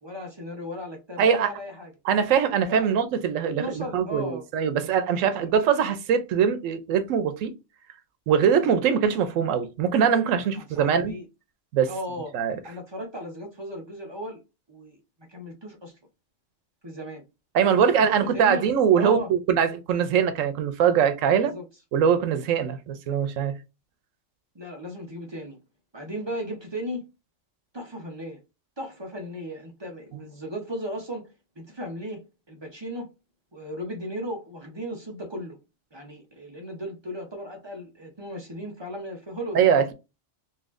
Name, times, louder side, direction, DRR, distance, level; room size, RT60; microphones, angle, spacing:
voice 1, 0.0-1.9 2.7-2.9 3.4-4.4 5.8-5.9 10.6-11.3 11.9-12.3 12.6-14.4 14.7-15.0 15.3-15.9 16.8-17.2 18.0-18.7 18.9-19.3 21.5-21.6 24.5-25.6 25.9-27.1 27.7-28.4 28.8-33.1 33.5-35.6 35.9-39.8, equal, 30° right, 0.6 m, -36 dB
voice 2, 1.2-1.5 2.1-7.5 8.3-11.1 11.7-11.9 12.3-12.6 17.5-21.5 21.9-23.5 39.5-39.9, right 7 dB, 90° right, 1.0 m, -22 dB
4.0 x 2.8 x 2.5 m
omnidirectional pair, 1.3 m